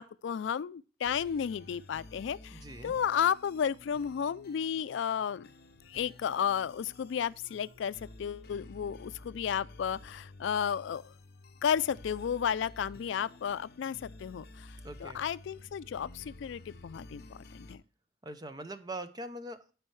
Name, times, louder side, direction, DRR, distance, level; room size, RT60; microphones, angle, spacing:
voice 1, 0.0-5.5 5.9-11.1 11.6-14.7 15.0-17.8, left 8 dB, 80° left, 0.3 m, -33 dB
sound 1, 1.0-17.8, left 2 dB, 55° left, 0.7 m, -52 dB
voice 2, 2.5-3.0 14.8-15.3 18.2-19.7, right 1 dB, 20° right, 0.5 m, -42 dB
13.0 x 4.6 x 3.2 m
head